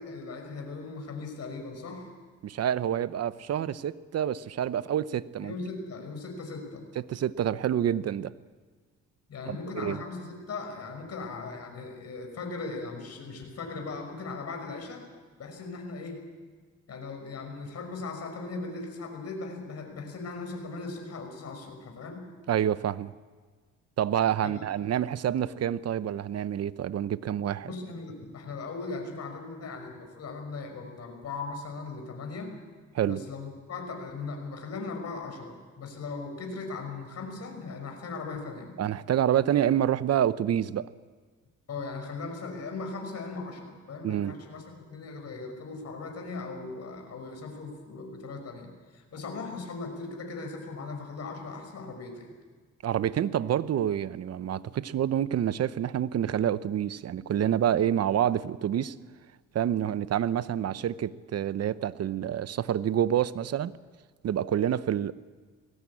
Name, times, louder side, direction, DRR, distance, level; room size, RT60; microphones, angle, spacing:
voice 1, 0.0-2.1 5.4-6.8 9.3-15.0 15.4-16.2 16.9-22.3 24.4-24.6 27.7-32.5 33.1-38.7 41.7-52.3, left 3 dB, 55° left, 5.8 m, -38 dB
voice 2, 2.4-5.5 7.1-8.3 9.5-10.0 22.5-23.1 24.0-27.7 32.9-33.2 38.8-40.9 44.0-44.4 52.8-59.0 59.5-63.8 64.2-65.1, right 10 dB, 55° right, 0.8 m, -27 dB
20.5 x 17.0 x 8.6 m
cardioid pair, 90°, 30 cm